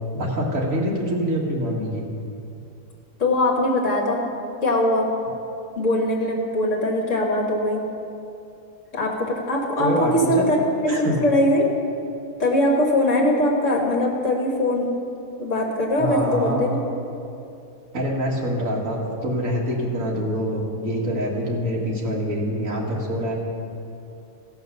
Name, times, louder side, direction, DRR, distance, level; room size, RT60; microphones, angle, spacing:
voice 1, 0.1-2.0 9.8-10.5 10.9-11.2 16.0-16.8 17.9-23.3, equal, 65° right, -2 dB, 2.1 m, -25 dB
voice 2, 3.2-4.2 4.6-5.1 5.7-7.8 8.9-11.7 12.4-14.9 15.4-16.8, left 1 dB, 60° left, 0 dB, 1.8 m, -21 dB
16.0 x 5.7 x 6.7 m, 2.7 s
omnidirectional pair, 1.5 m